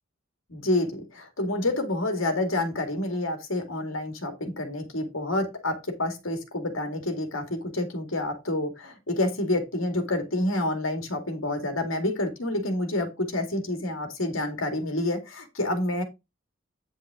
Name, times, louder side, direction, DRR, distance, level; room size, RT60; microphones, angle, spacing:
voice 1, 0.5-16.0, left 1 dB, 75° left, 6 dB, 2.1 m, -28 dB
9.2 x 5.5 x 3.7 m, 0.23 s
head